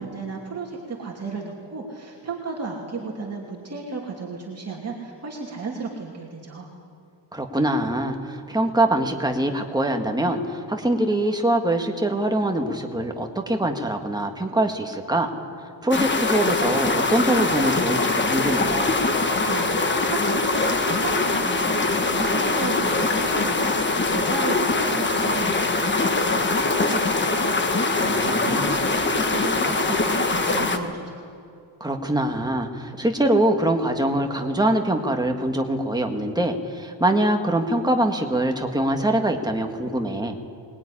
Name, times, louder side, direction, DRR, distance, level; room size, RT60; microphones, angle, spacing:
voice 1, 0.0-6.7 19.2-31.2, right 3 dB, 35° right, -2 dB, 2.7 m, -34 dB
voice 2, 7.3-15.3 15.8-19.0 28.0-28.8 31.8-40.4, right 1 dB, 10° right, 3 dB, 1.7 m, -23 dB
sound 1, 15.9-30.8, left 3 dB, 25° left, 1.4 m, -23 dB
22.0 x 20.5 x 10.0 m, 2.5 s
wide cardioid pair, 180°, 45 cm